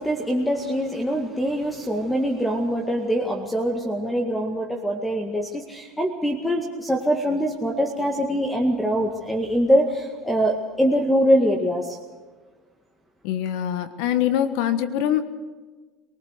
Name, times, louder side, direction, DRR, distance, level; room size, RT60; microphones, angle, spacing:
voice 1, 0.0-12.0, equal, 5° left, 3 dB, 2.0 m, -23 dB
voice 2, 13.2-15.2, left 10 dB, 75° left, 11 dB, 1.4 m, -23 dB
23.0 x 19.0 x 6.6 m, 1.4 s
supercardioid pair, 105°, 0 cm